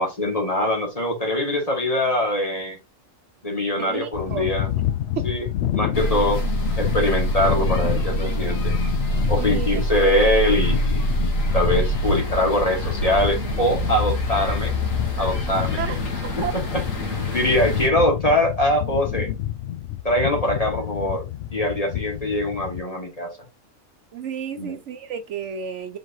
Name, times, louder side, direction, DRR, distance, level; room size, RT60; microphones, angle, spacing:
voice 1, 0.0-2.8 3.4-4.7 5.2-5.5 5.7-6.5 6.8-8.7 9.3-14.7 15.2-15.8 16.4-16.5 16.7-19.3 20.0-23.3 24.6-24.8, left 1 dB, 30° left, 1.7 m, -23 dB
voice 2, 3.8-4.5 5.2-5.3 6.0-6.1 9.4-10.3 15.8-16.5 17.3-17.4 24.1-26.0, right 7 dB, 70° right, 1.0 m, -32 dB
sound 1, 4.1-22.8, left 12 dB, 65° left, 0.7 m, -29 dB
sound 2, 5.9-17.9, equal, 85° left, 1.7 m, -25 dB
4.6 x 4.0 x 2.7 m
omnidirectional pair, 1.3 m